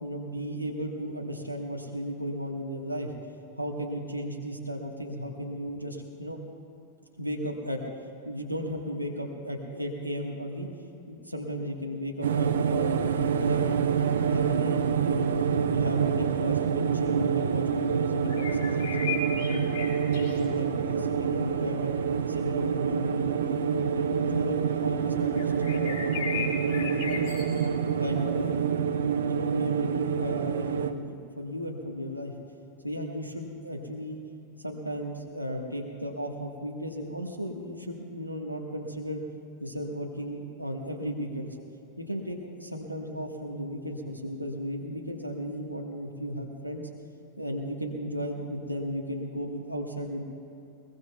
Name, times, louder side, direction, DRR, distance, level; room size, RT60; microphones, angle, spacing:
voice 1, 0.0-3.1 3.6-6.4 7.2-7.8 8.2-10.7 11.1-13.0 13.4-13.9 14.3-15.3 15.7-19.0 19.3-19.7 20.0-21.8 22.3-27.4 28.0-28.8 29.1-32.3 32.8-34.2 34.6-39.2 39.6-41.6 42.0-46.9 47.4-50.2, equal, 90° left, 2 dB, 1.4 m, -35 dB
sound 1, 12.2-30.9, right 7 dB, 65° right, 0.7 m, -27 dB
sound 2, 17.5-28.7, left 5 dB, 50° left, 4.2 m, -40 dB
21.5 x 21.5 x 2.3 m, 2.7 s
figure-of-eight pair, 90°, 0 cm